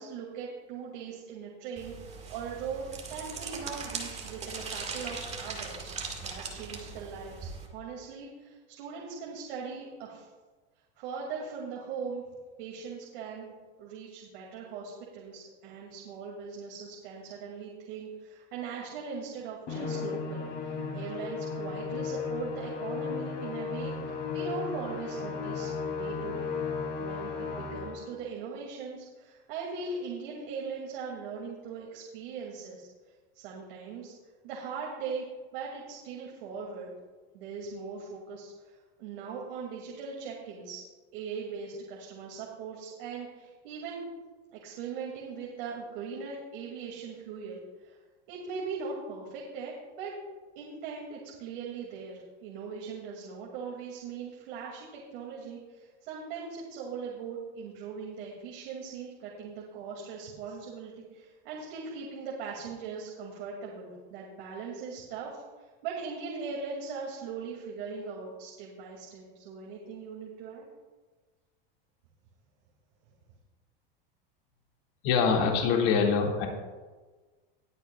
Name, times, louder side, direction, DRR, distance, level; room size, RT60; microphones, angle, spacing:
voice 1, 0.0-10.3 11.0-12.2 12.6-13.5 13.8-26.5 27.0-32.9 33.3-34.1 34.4-36.9 37.3-40.8 41.1-44.0 44.5-48.0 48.3-50.1 50.5-70.7, right 5 dB, 70° right, -2 dB, 2.4 m, -40 dB
sound 1, 1.8-7.7, right 4 dB, 20° right, 1.8 m, -40 dB
Musical instrument, 19.7-28.1, left 5 dB, 35° left, 2.8 m, -35 dB
voice 2, 75.0-76.5, left 5 dB, 55° left, 1 dB, 2.1 m, -24 dB
20.0 x 8.3 x 2.3 m, 1.3 s
supercardioid pair, 140°, 29 cm